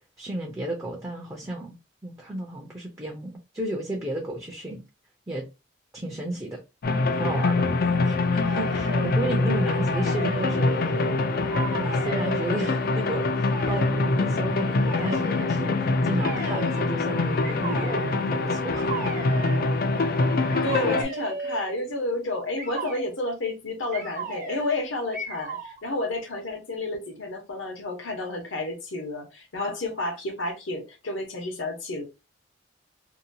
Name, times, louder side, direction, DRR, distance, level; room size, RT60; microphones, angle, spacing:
voice 1, 0.2-1.8 2.0-4.8 5.3-5.5 5.9-6.6 7.1-7.7 8.0-11.1 11.8-18.9, right 1 dB, 15° right, 0.5 m, -33 dB
sound 1, 6.8-21.0, left 3 dB, 50° left, 0.4 m, -24 dB
sound 2, 8.4-9.3 9.7-11.2 11.5-12.8 13.5-14.0 14.8-15.5 16.2-16.9 17.4-18.2 18.7-19.7 20.5-21.7 22.6-23.1 23.9-24.8 25.1-25.8, right 3 dB, 45° right, 0.8 m, -36 dB
voice 2, 20.6-32.0, left 2 dB, 75° left, 0.9 m, -31 dB
2.8 x 2.2 x 2.7 m
head